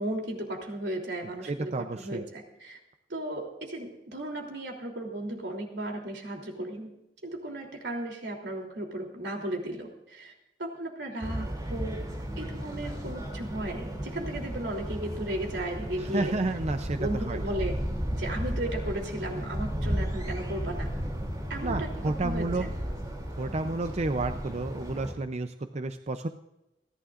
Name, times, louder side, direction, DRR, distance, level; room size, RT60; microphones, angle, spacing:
voice 1, 0.0-2.8 3.1-6.9 7.2-10.3 10.6-12.0 12.4-16.3 16.9-17.7 18.2-20.9 21.5-21.9 22.2-22.7, right 1 dB, 80° right, 1 dB, 3.2 m, -35 dB
voice 2, 1.4-2.2 16.0-17.4 21.6-22.7 23.4-26.3, right 2 dB, 40° right, 8 dB, 0.6 m, -31 dB
sound 1, 11.2-25.1, equal, 20° right, 2.9 m, -34 dB
29.0 x 11.0 x 2.5 m, 0.89 s
head